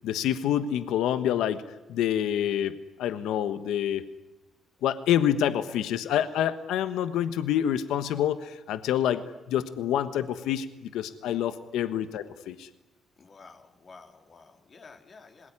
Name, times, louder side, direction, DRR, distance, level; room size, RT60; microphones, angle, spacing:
voice 1, 0.0-1.6 1.9-4.0 4.8-12.7, left 10 dB, 85° left, 11 dB, 1.3 m, -27 dB
voice 2, 13.2-15.5, left 4 dB, 45° left, 4 dB, 4.0 m, -51 dB
26.5 x 21.0 x 9.9 m, 1.0 s
cardioid pair, 90°, 0 cm